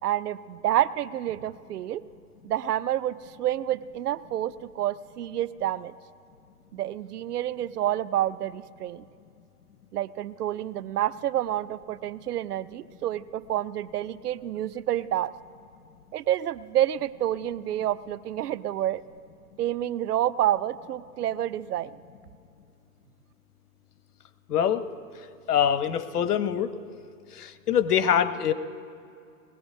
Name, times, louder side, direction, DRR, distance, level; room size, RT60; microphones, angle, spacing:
voice 1, 0.0-2.0 2.4-5.9 6.7-9.0 9.9-15.3 16.1-19.0 19.6-22.0, right 12 dB, 80° right, 16 dB, 0.6 m, -28 dB
voice 2, 24.5-24.9 25.5-26.7 27.3-28.5, left 9 dB, 80° left, 12 dB, 0.9 m, -24 dB
21.0 x 17.0 x 2.7 m, 2.4 s
hypercardioid pair, 130°, 46 cm